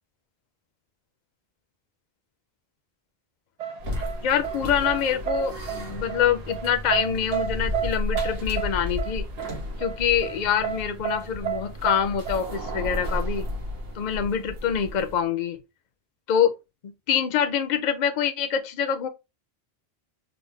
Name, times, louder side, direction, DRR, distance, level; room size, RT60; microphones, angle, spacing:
sound 1, 3.6-13.5, right 9 dB, 50° right, 0.5 m, -32 dB
sound 2, 3.8-15.2, left 1 dB, 70° right, 1.4 m, -33 dB
voice 1, 4.2-9.3 9.8-13.4 14.0-15.6 16.3-16.6 17.1-19.1, left 8 dB, 50° left, 0.6 m, -25 dB
4.0 x 2.1 x 3.2 m
omnidirectional pair, 1.1 m